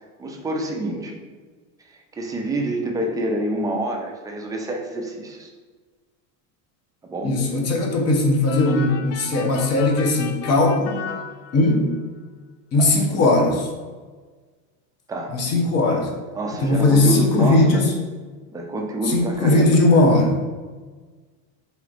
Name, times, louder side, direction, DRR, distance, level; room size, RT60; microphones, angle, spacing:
voice 1, 0.2-1.1 2.1-5.5 7.0-7.4 12.7-12.9 15.1-15.4 16.3-17.9 18.5-19.8, right 1 dB, 10° right, 1 dB, 0.3 m, -27 dB
voice 2, 7.2-11.1 11.5-11.9 12.7-13.7 15.3-16.1 16.6-17.9 19.0-20.3, left 2 dB, 35° left, 2 dB, 0.8 m, -18 dB
sound 1, 8.5-12.0, left 7 dB, 75° left, 0.5 m, -36 dB
4.1 x 3.1 x 2.4 m, 1.4 s
supercardioid pair, 110°, 42 cm